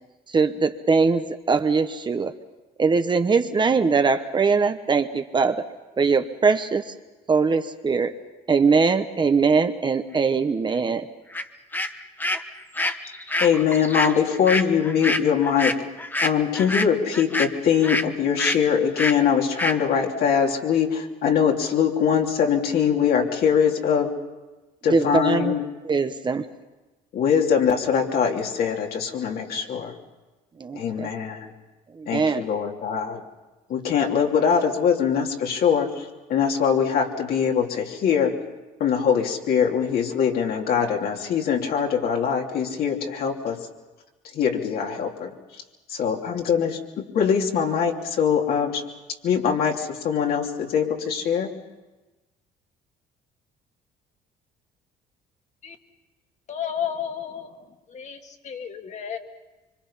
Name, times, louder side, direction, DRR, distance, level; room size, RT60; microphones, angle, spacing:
voice 1, 0.3-2.3 2.8-5.6 6.0-6.9 7.3-8.1 8.5-11.1 24.9-25.5 25.8-26.5 30.6-31.1 31.9-32.4, right 4 dB, 25° right, 8 dB, 1.1 m, -21 dB
sound 1, 11.3-11.4 11.7-18.1 18.4-18.6 19.0-19.2 19.6-19.8, left 2 dB, 10° left, 1.1 m, -26 dB
voice 2, 13.4-15.8 16.2-24.1 24.8-25.6 27.1-29.9 30.7-31.5 32.1-33.2 33.7-38.3 38.8-43.6 44.3-45.3 45.9-48.8 49.2-51.5, left 7 dB, 65° left, 1 dB, 3.0 m, -22 dB
voice 3, 56.5-59.2, left 8 dB, 45° left, 5 dB, 2.2 m, -32 dB
26.0 x 24.5 x 5.7 m, 1.1 s
cardioid pair, 110°, 17 cm